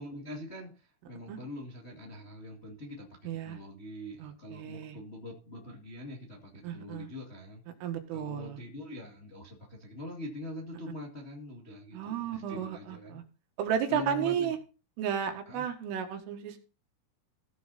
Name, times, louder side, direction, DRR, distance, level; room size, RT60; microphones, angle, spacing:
voice 1, 0.0-7.6 8.1-13.2 13.9-14.5 15.4-15.6, left 1 dB, 85° left, -2 dB, 0.6 m, -43 dB
voice 2, 3.3-3.6 4.2-5.0 6.6-7.1 7.8-8.6 11.9-13.2 13.6-14.6 15.0-16.6, right 8 dB, 85° right, 5 dB, 4.1 m, -33 dB
16.0 x 6.7 x 4.2 m, 0.34 s
omnidirectional pair, 5.7 m